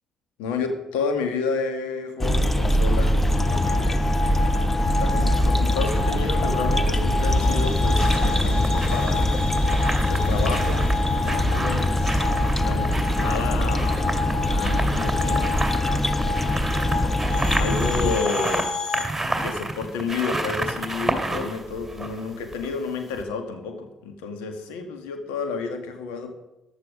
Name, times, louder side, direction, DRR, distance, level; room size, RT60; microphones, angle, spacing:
voice 1, 0.4-3.2 3.5-4.2 5.0-9.4 10.1-10.8 11.2-12.2 12.6-12.9 13.2-15.6 17.6-18.7 19.4-26.3, left 4 dB, 65° left, 6 dB, 1.9 m, -30 dB
sound 1, 2.2-18.1, left 1 dB, 10° left, 0.9 m, -22 dB
sound 2, 3.3-19.1, left 4 dB, 40° left, 2.0 m, -31 dB
sound 3, 5.3-6.1 7.3-22.8 23.2-23.3, right 2 dB, 10° right, 2.5 m, -31 dB
14.5 x 11.0 x 5.1 m, 0.94 s
figure-of-eight pair, 50°, 3 cm